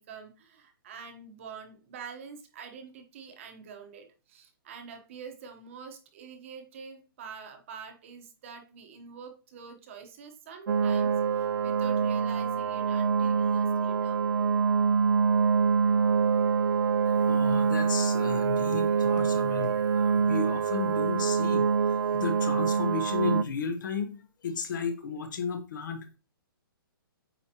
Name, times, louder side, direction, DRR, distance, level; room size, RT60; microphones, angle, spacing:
voice 1, 0.0-14.2, right 6 dB, 35° right, 6 dB, 1.1 m, -46 dB
sound 1, 10.7-23.4, right 6 dB, 70° right, 0.4 m, -25 dB
voice 2, 17.0-26.2, left 5 dB, 55° left, 7 dB, 1.2 m, -34 dB
8.6 x 4.8 x 3.0 m, 0.33 s
hypercardioid pair, 170°, 12 cm